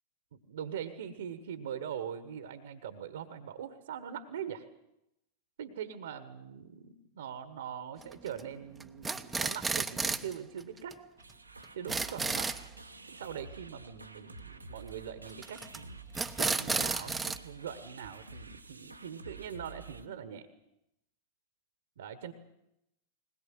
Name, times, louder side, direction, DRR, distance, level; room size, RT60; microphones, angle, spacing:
voice 1, 0.3-4.6 5.6-11.0 11.7-12.5 13.1-20.5 22.0-22.3, right 8 dB, 60° right, 12 dB, 1.4 m, -42 dB
sound 1, 8.0-8.4 8.8-10.3 10.6-10.7 10.9-11.0 11.3-11.4 11.6-12.6 15.4-15.8 16.1-17.4, right 4 dB, 10° right, 1.0 m, -32 dB
sound 2, 11.2-20.1, right 3 dB, 85° right, 1.2 m, -49 dB
20.5 x 20.5 x 7.7 m, 0.85 s
figure-of-eight pair, 90°, 0 cm